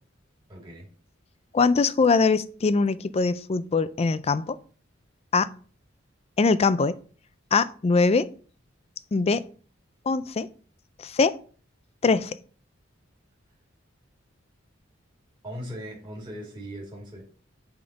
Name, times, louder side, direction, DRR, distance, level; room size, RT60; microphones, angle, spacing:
voice 1, 0.5-0.9 15.4-17.2, equal, 25° right, 2.1 m, -39 dB
voice 2, 1.5-4.6 5.3-5.5 6.4-7.0 7.5-8.3 9.1-9.4 10.1-10.5 11.0-11.3 12.0-12.4, left 4 dB, 30° left, 0.4 m, -22 dB
8.5 x 3.6 x 4.0 m
head